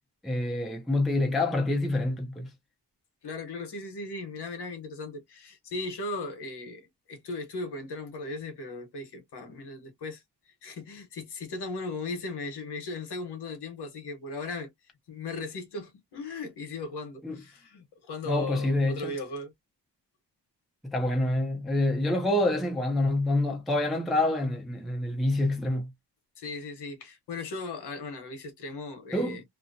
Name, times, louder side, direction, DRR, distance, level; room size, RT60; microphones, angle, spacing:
voice 1, 0.2-2.5 17.2-17.4 18.3-19.1 20.8-25.9 29.1-29.4, left 2 dB, ahead, 0.3 m, -27 dB
voice 2, 3.2-14.7 15.1-19.5 26.4-29.4, left 3 dB, 65° left, 1.0 m, -37 dB
2.7 x 2.0 x 2.5 m
wide cardioid pair, 170°, 42 cm